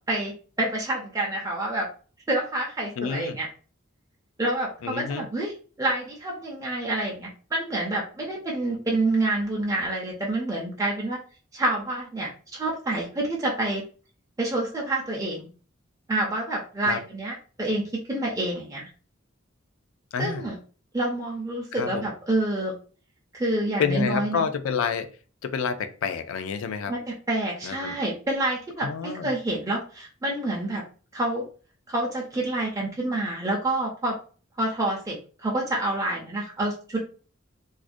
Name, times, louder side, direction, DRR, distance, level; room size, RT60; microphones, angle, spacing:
voice 1, 0.1-1.9 2.3-3.5 4.4-11.2 11.5-13.8 14.4-15.5 16.1-18.9 20.2-20.6 20.9-22.8 23.3-24.4 26.9-30.8 31.1-31.4 31.9-34.2 34.6-37.0, right 2 dB, 15° right, -3 dB, 0.4 m, -28 dB
voice 2, 3.0-3.4 4.8-5.3 16.8-17.0 20.1-20.4 21.7-22.1 23.8-25.1 25.4-26.9 27.6-28.0 28.8-29.3, left 6 dB, 90° left, 10 dB, 0.3 m, -28 dB
2.4 x 2.1 x 2.5 m, 0.39 s
head